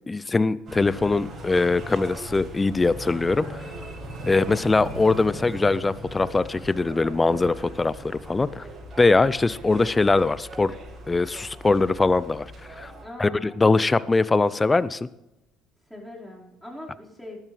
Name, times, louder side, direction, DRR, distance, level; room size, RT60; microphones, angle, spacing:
voice 1, 0.1-3.7 4.3-8.7 9.0-10.7 11.1-12.5 12.8-12.9 13.2-15.1, left 3 dB, 20° left, 18 dB, 0.6 m, -22 dB
sound 1, 0.7-13.1, equal, 40° right, 6.7 m, -39 dB
voice 2, 4.2-4.7 13.0-13.6 15.9-17.4, left 1 dB, ahead, -4 dB, 5.0 m, -41 dB
20.0 x 12.0 x 3.4 m, 0.93 s
hypercardioid pair, 55°, 0 cm